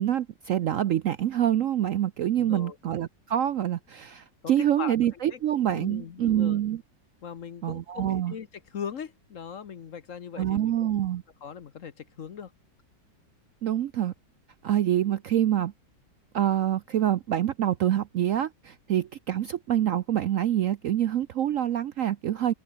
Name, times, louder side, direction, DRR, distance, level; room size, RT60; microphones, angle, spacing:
voice 1, 0.0-6.8 7.6-8.3 10.4-11.2 13.6-14.1 14.6-15.7 16.3-22.5, right 11 dB, 65° right, 0.8 m, -26 dB
voice 2, 2.3-2.8 4.4-4.5 4.8-4.9 5.3-5.4 5.7-6.6 7.2-11.1 11.4-12.5, left 7 dB, 50° left, 1.2 m, -39 dB
open air
omnidirectional pair, 1.9 m